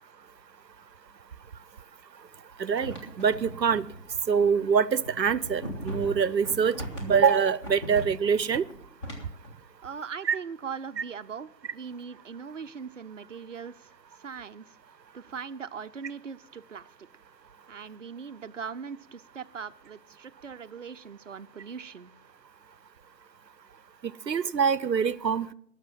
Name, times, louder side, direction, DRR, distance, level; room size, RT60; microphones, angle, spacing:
voice 1, 2.6-3.9 4.3-8.6 10.3-10.4 24.0-25.5, right 6 dB, 90° right, 20 dB, 0.8 m, -25 dB
sound 1, 2.8-9.5, equal, 20° left, 1.7 m, -39 dB
voice 2, 9.8-14.8 15.1-17.1 17.7-22.1, right 6 dB, 50° right, 11 dB, 0.7 m, -40 dB
17.5 x 6.7 x 7.3 m, 0.69 s
figure-of-eight pair, 155°, 49 cm